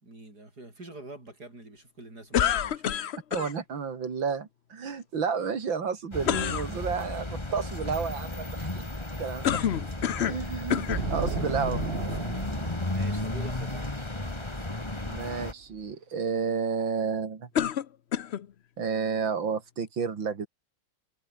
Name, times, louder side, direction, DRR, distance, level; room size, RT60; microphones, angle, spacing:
voice 1, 0.0-3.1 9.1-9.3 12.9-13.9, right 2 dB, 50° right, 7.8 m, -46 dB
sound 1, 2.3-3.5 6.2-6.7 9.4-10.4 10.7-11.1 11.9-12.0 17.6-18.5, left 9 dB, 70° left, 0.6 m, -27 dB
voice 2, 3.3-8.8 9.2-9.5 10.3-11.8 15.0-17.5 18.8-20.5, right 6 dB, 75° right, 3.4 m, -31 dB
sound 2, 6.1-15.5, left 2 dB, 15° left, 2.3 m, -34 dB
sound 3, 10.9-15.8, right 5 dB, 35° right, 1.6 m, -36 dB
omnidirectional pair, 2.1 m